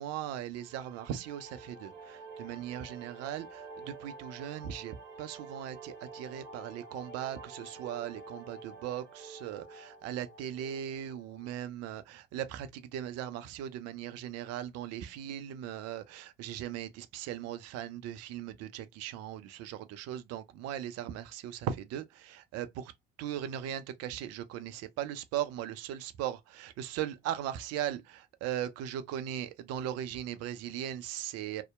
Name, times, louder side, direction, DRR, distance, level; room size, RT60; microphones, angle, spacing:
voice 1, 0.0-22.9 23.2-31.6, right 10 dB, 60° right, 0.5 m, -38 dB
sound 1, 0.5-11.6, right 3 dB, 80° right, 0.8 m, -49 dB
2.7 x 2.1 x 2.2 m
figure-of-eight pair, 50°, 29 cm